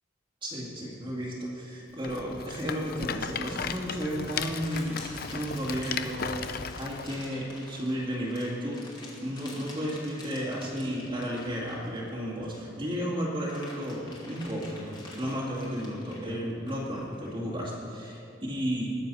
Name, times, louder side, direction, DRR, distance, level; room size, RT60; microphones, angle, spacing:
voice 1, 0.4-5.0 5.3-8.8 9.2-18.9, equal, 25° right, -5 dB, 2.2 m, -33 dB
Rattle, 2.0-7.1, left 6 dB, 55° left, 0.6 m, -36 dB
sound 1, 3.8-12.7 13.1-17.3, left 2 dB, 25° left, 2.4 m, -48 dB
20.5 x 7.3 x 5.5 m, 2.6 s
head